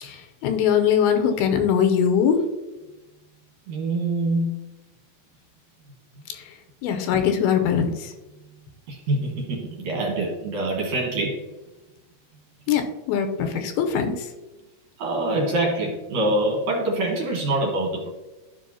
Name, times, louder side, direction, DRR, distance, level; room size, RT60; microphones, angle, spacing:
voice 1, 0.0-2.4 6.3-6.4 6.8-8.1 12.7-14.3, left 8 dB, 90° left, 6 dB, 2.6 m, -22 dB
voice 2, 3.7-4.6 8.9-11.5 15.0-18.1, right 2 dB, 60° right, -1 dB, 2.2 m, -25 dB
13.0 x 5.6 x 2.8 m, 1.1 s
omnidirectional pair, 4.3 m